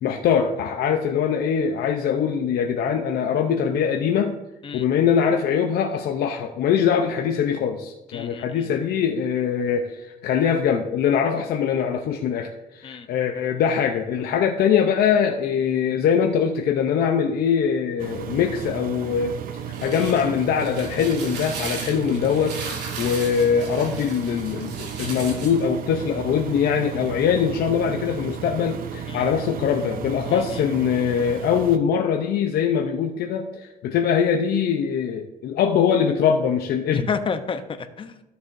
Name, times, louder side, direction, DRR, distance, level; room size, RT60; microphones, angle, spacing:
voice 1, 0.0-4.3 4.7-19.4 19.8-22.6 23.0-37.1, left 7 dB, 65° left, 3 dB, 0.7 m, -22 dB
voice 2, 8.1-8.7 12.8-13.1 29.1-29.3 30.3-30.6 36.9-38.2, left 5 dB, 30° left, 9 dB, 0.8 m, -30 dB
Engine, 18.0-31.8, right 8 dB, 60° right, 0.7 m, -34 dB
sound 1, 19.5-25.6, right 4 dB, 75° right, 2.7 m, -36 dB
13.0 x 6.8 x 2.6 m, 0.94 s
cardioid pair, 110°, 17 cm